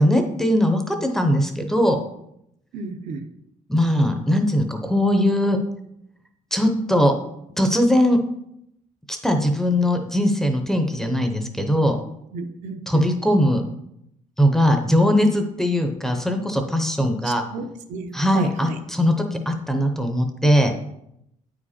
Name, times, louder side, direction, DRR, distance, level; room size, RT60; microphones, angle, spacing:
voice 1, 0.0-2.0 3.7-5.6 6.5-7.1 7.6-8.2 9.1-12.0 12.9-13.6 14.4-17.4 18.1-20.7, equal, 5° left, 5 dB, 0.6 m, -20 dB
voice 2, 2.7-3.3 12.3-13.1 17.2-18.8, right 3 dB, 65° right, 6 dB, 0.8 m, -33 dB
9.2 x 4.9 x 4.2 m, 0.78 s
cardioid pair, 175°, 14 cm